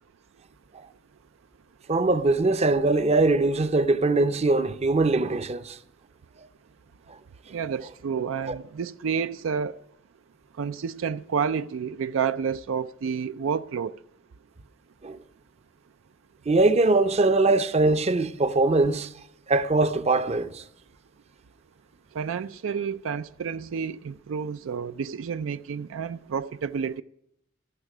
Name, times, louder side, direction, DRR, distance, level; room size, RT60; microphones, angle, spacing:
voice 1, 1.9-5.8 8.5-8.6 15.0-15.2 16.5-19.1 19.5-20.6, right 2 dB, 35° right, 0.6 m, -22 dB
voice 2, 7.5-9.7 10.6-13.9 22.1-27.0, right 6 dB, 75° right, 0.4 m, -30 dB
13.0 x 12.5 x 6.0 m
head